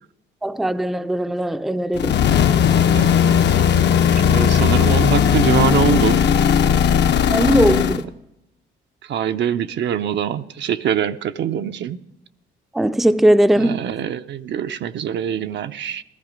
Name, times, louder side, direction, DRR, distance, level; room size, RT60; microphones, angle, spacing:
voice 1, 0.4-2.2 7.3-8.0 12.7-13.8, right 1 dB, ahead, 0.4 m, -18 dB
sound 1, 1.9-8.0, left 8 dB, 60° left, 0.7 m, -16 dB
voice 2, 2.9-6.2 7.4-7.6 9.1-12.0 13.6-16.0, right 9 dB, 65° right, 0.7 m, -24 dB
15.5 x 13.5 x 5.1 m
cardioid pair, 90°, 20 cm